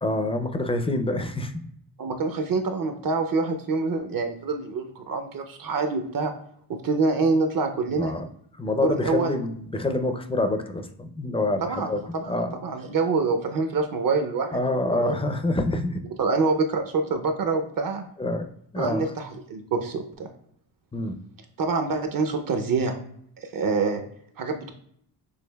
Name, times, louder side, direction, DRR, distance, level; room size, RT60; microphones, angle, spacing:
voice 1, 0.0-1.5 8.0-8.2 8.6-12.0 12.3-12.5 14.5-16.0 18.2-18.4 18.7-19.1 20.9-21.2, left 2 dB, 15° left, 7 dB, 0.4 m, -26 dB
voice 2, 2.0-6.3 6.7-8.1 8.8-9.3 11.6-15.2 16.2-18.1 18.8-20.3 21.6-23.0 23.4-24.0 24.4-24.7, right 4 dB, 50° right, 6 dB, 0.6 m, -26 dB
6.3 x 2.7 x 2.2 m, 0.68 s
cardioid pair, 100°, 43 cm